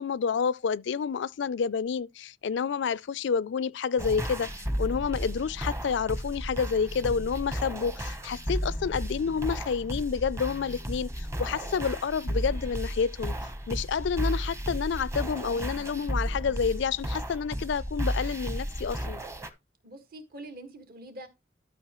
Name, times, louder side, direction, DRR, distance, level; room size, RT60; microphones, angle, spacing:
voice 1, 0.0-4.5 4.8-13.3 13.7-19.2, left 6 dB, 65° left, 0.4 m, -29 dB
sound 1, 4.0-19.5, equal, 15° right, 1.0 m, -33 dB
voice 2, 19.8-21.3, right 1 dB, 55° right, 1.7 m, -44 dB
13.0 x 5.9 x 3.0 m
head